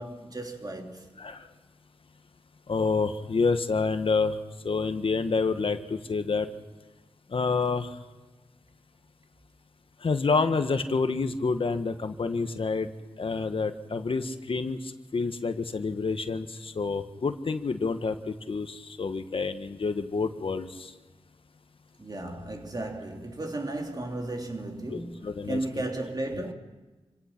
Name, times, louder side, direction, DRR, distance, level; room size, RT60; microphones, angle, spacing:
voice 1, 0.0-1.1 22.0-26.5, right 2 dB, 40° right, 3.1 m, -34 dB
voice 2, 2.7-4.4 4.6-6.5 7.3-7.9 10.0-12.9 13.2-20.9 24.9-25.8, left 4 dB, 60° left, 1.3 m, -28 dB
27.0 x 17.5 x 5.9 m
cardioid pair, 55°, 10 cm